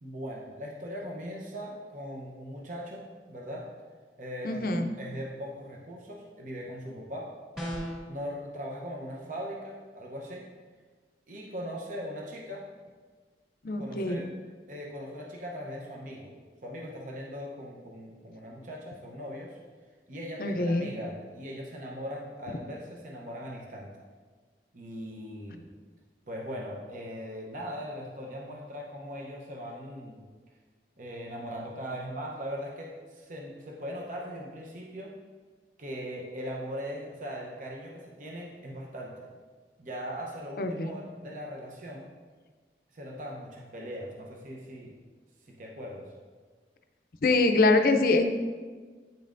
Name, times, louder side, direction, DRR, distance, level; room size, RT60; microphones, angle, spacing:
voice 1, 0.0-3.6 4.2-7.3 8.1-10.4 11.3-12.6 13.8-14.3 14.7-16.4 16.6-19.6 20.1-23.9 24.7-25.6 26.3-30.2 31.0-35.1 35.8-39.3 39.8-42.1 42.9-44.9 45.6-46.1, equal, 45° right, -1 dB, 0.7 m, -39 dB
voice 2, 4.4-4.9 13.6-14.2 20.4-20.9 40.6-40.9 47.2-48.2, left 2 dB, 55° left, 7 dB, 0.5 m, -24 dB
sound 1, 7.6-8.1, equal, ahead, 1.9 m, -34 dB
9.0 x 5.4 x 2.5 m, 1.5 s
head